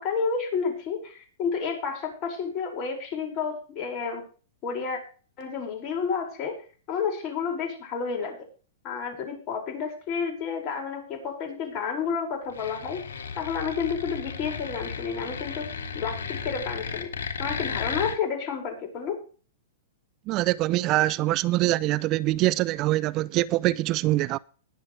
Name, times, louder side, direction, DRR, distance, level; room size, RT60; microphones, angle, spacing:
voice 1, 0.0-4.2 4.6-5.0 5.4-6.6 6.9-8.4 8.8-13.0 13.4-15.7 15.9-17.1 17.4-19.2, left 6 dB, 40° left, 5.7 m, -30 dB
sound 1, 12.5-18.2, left 6 dB, 75° left, 2.9 m, -34 dB
voice 2, 20.3-24.4, right 17 dB, 40° right, 0.4 m, -24 dB
21.0 x 7.8 x 3.3 m
hypercardioid pair, 120°, 0 cm